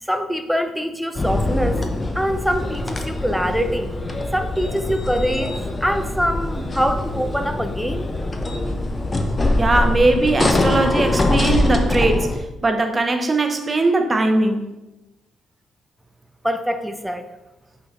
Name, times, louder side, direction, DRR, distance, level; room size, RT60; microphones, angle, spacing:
voice 1, 0.0-1.8 2.1-3.9 4.3-5.5 5.8-8.1 16.4-17.3, equal, ahead, 8 dB, 0.5 m, -24 dB
sound 1, 1.1-12.4, left 2 dB, 25° left, 0.8 m, -23 dB
voice 2, 9.6-12.3 12.6-14.6, right 2 dB, 25° right, 6 dB, 0.8 m, -19 dB
6.1 x 3.9 x 4.7 m, 1.0 s
cardioid pair, 90°, 0 cm